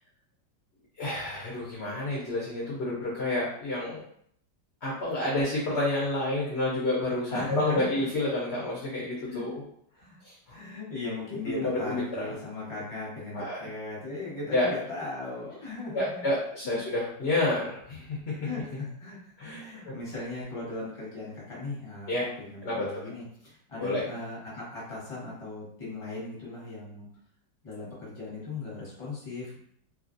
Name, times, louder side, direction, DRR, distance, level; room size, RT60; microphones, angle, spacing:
voice 1, 1.0-4.0 4.8-9.6 10.2-10.3 11.5-12.2 13.3-13.7 14.5-14.7 15.9-18.3 19.4-19.9 22.1-22.3 22.6-22.8 23.8-24.0, left 1 dB, 60° left, -6 dB, 0.7 m, -29 dB
voice 2, 7.3-7.9 9.3-9.4 9.9-10.2 10.5-16.2 16.6-16.8 18.3-27.1 27.6-29.6, left 3 dB, 20° left, -6 dB, 0.9 m, -38 dB
3.0 x 2.4 x 2.5 m, 0.65 s
omnidirectional pair, 2.0 m